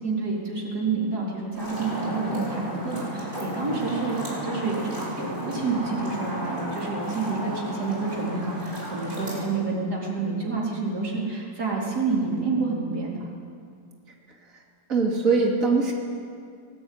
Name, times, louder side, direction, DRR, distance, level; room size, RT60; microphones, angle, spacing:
voice 1, 0.0-4.9 5.2-13.2, right 4 dB, 80° right, -4 dB, 4.7 m, -28 dB
sound 1, 1.5-9.4, equal, 30° right, 6.7 m, -33 dB
voice 2, 14.9-15.9, right 4 dB, 55° right, -1 dB, 3.0 m, -22 dB
23.0 x 19.5 x 9.5 m, 2.3 s
omnidirectional pair, 1.7 m